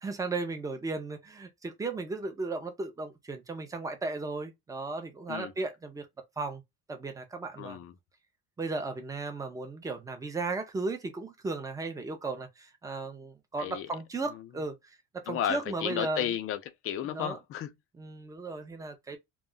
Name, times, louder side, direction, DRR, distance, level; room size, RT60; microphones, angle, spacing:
voice 1, 0.0-6.1 6.4-6.6 6.9-7.8 8.6-16.3 17.0-17.4 18.0-19.2, right 3 dB, 10° right, 0.5 m, -35 dB
voice 2, 7.6-7.9 13.6-13.9 15.3-17.7, left 10 dB, 50° left, 0.5 m, -33 dB
2.3 x 2.0 x 3.6 m
cardioid pair, 145°, 29 cm